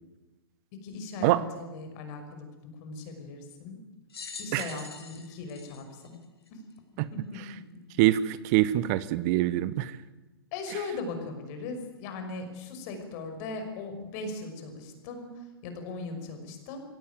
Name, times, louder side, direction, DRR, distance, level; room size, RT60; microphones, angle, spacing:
voice 1, 0.8-2.5 2.8-3.8 4.4-6.2 6.5-6.6 7.1-7.2 10.5-16.8, left 3 dB, 45° left, 6 dB, 5.7 m, -38 dB
sound 1, 4.1-6.8 7.5-7.6 8.7-8.8, left 5 dB, 80° left, 3.5 m, -44 dB
voice 2, 8.0-10.0, right 15 dB, 40° right, 17 dB, 0.9 m, -24 dB
23.0 x 17.0 x 9.3 m, 1.1 s
hypercardioid pair, 115°, 13 cm